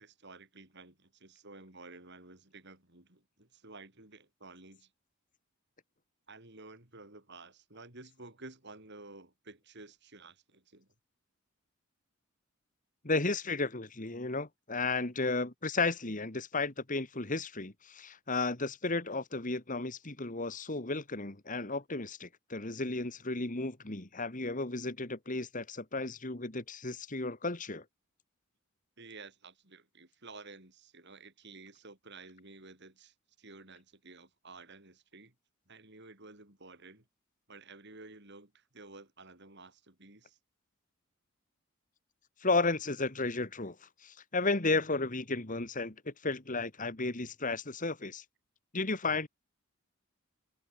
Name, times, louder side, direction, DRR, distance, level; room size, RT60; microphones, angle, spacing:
voice 1, 0.0-4.9 6.3-10.9 15.2-15.3 29.0-35.3 35.7-37.1 37.5-40.4, right 3 dB, 55° right, 6.2 m, -52 dB
voice 2, 13.0-27.8 42.4-43.8 44.0-48.2 48.7-49.3, left 3 dB, 40° left, 2.1 m, -33 dB
head